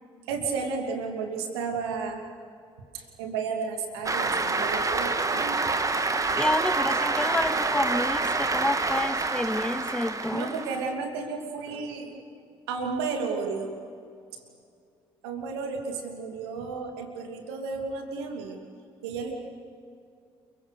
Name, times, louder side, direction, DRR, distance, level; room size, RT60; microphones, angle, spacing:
voice 1, 0.3-2.2 2.9-5.6 10.3-12.2 12.7-13.7 15.2-18.6 19.0-19.3, right 5 dB, 75° right, 3 dB, 2.9 m, -32 dB
Cheering / Applause, 4.0-10.9, right 3 dB, 25° right, 1.7 m, -27 dB
voice 2, 6.3-10.5, left 1 dB, 5° left, 14 dB, 1.1 m, -29 dB
29.0 x 23.0 x 6.6 m, 2.4 s
figure-of-eight pair, 45°, 13 cm